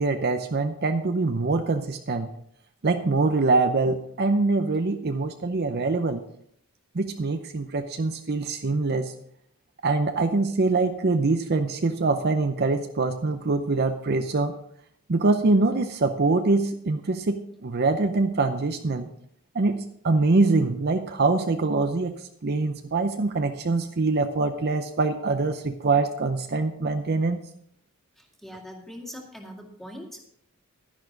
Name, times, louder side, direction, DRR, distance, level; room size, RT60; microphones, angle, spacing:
voice 1, 0.0-2.3 2.8-6.2 6.9-9.1 9.8-14.6 15.1-19.1 19.5-27.4, right 3 dB, 45° right, 7 dB, 0.7 m, -24 dB
voice 2, 28.2-30.3, equal, ahead, 1 dB, 2.1 m, -42 dB
11.5 x 10.5 x 3.9 m, 0.68 s
head